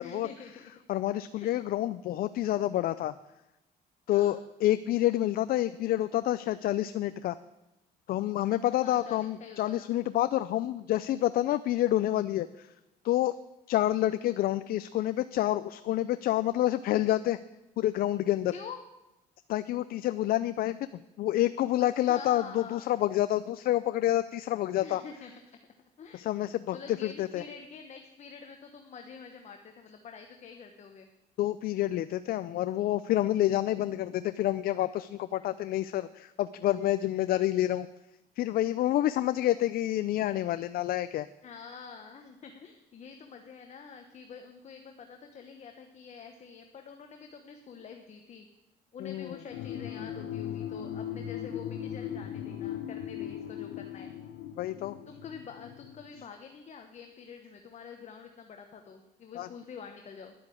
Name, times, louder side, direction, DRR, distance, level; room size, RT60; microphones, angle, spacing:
voice 1, 0.0-0.7 1.3-1.5 4.1-4.3 8.8-9.9 18.5-18.8 21.8-22.9 24.8-25.7 26.0-26.3 26.7-31.1 33.8-33.9 41.4-48.5 48.9-54.1 55.1-60.3, left 6 dB, 40° left, 5 dB, 1.1 m, -47 dB
voice 2, 0.9-3.1 4.1-7.4 8.1-12.7 13.0-13.4 13.7-17.4 17.8-18.5 19.5-25.0 26.1-27.4 31.4-37.9 38.4-41.3 49.0-49.4 54.6-55.0 59.4-59.5, left 13 dB, 60° left, 13 dB, 0.5 m, -28 dB
sound 1, 49.5-56.2, left 10 dB, 90° left, 1.1 m, -38 dB
10.5 x 7.9 x 8.4 m, 0.95 s
cardioid pair, 110°, 17 cm